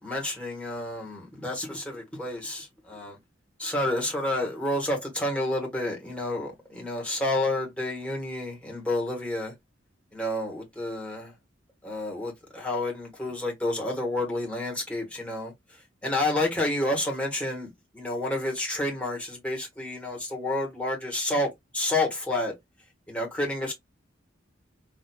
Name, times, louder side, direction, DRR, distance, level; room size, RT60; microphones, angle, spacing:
voice 1, 0.0-3.2 3.6-9.5 10.1-11.3 11.8-22.5 23.1-23.7, left 1 dB, 5° left, 1.2 m, -30 dB
4.1 x 2.6 x 2.2 m
head